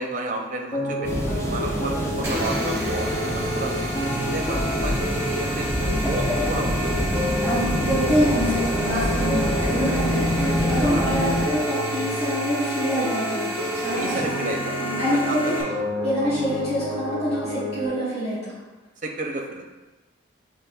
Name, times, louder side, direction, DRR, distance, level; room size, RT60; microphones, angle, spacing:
voice 1, 0.0-3.8 4.3-5.7 6.0-7.1 7.5-7.9 10.8-11.1 14.0-14.7 15.3-15.8 16.2-16.3 19.0-19.6, right 2 dB, 40° right, 1 dB, 0.5 m, -32 dB
sound 1, 0.7-17.9, equal, 45° left, 0.9 m, -30 dB
sound 2, 1.0-11.5, left 1 dB, 15° left, 0.4 m, -26 dB
sound 3, 2.2-15.6, equal, 15° right, 0.9 m, -32 dB
voice 2, 7.4-15.5 16.0-18.5, equal, 30° left, -13 dB, 1.5 m, -26 dB
6.8 x 3.1 x 2.3 m, 1.2 s
head